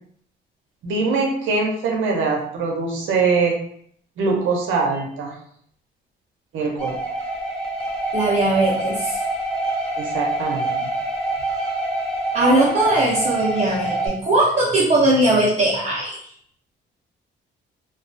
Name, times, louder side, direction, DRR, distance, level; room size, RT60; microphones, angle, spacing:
voice 1, 0.8-3.6 4.2-5.4 6.5-7.0 10.0-10.9, right 4 dB, 80° right, 0 dB, 0.6 m, -22 dB
sound 1, 6.8-14.1, right 2 dB, 5° left, 0.7 m, -26 dB
voice 2, 8.1-9.2 12.3-16.2, right 2 dB, 35° right, -6 dB, 0.6 m, -19 dB
2.3 x 2.2 x 2.5 m, 0.64 s
cardioid pair, 90°, 20 cm